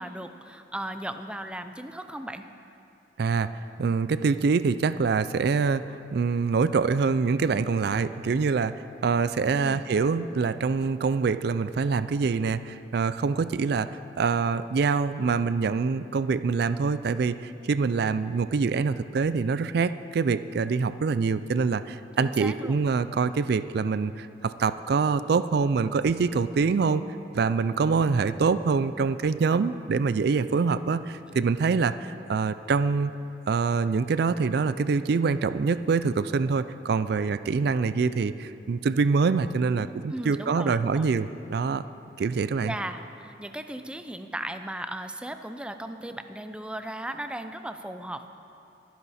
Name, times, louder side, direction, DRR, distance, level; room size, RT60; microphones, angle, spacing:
voice 1, 0.0-2.5 9.5-9.8 22.2-22.8 40.1-41.1 42.6-48.3, right 1 dB, 5° right, 8 dB, 0.5 m, -36 dB
voice 2, 3.2-3.5 3.8-27.0 27.3-33.1 33.5-41.9 42.2-42.7, right 5 dB, 60° right, 13 dB, 0.4 m, -25 dB
22.5 x 10.5 x 4.2 m, 2.7 s
head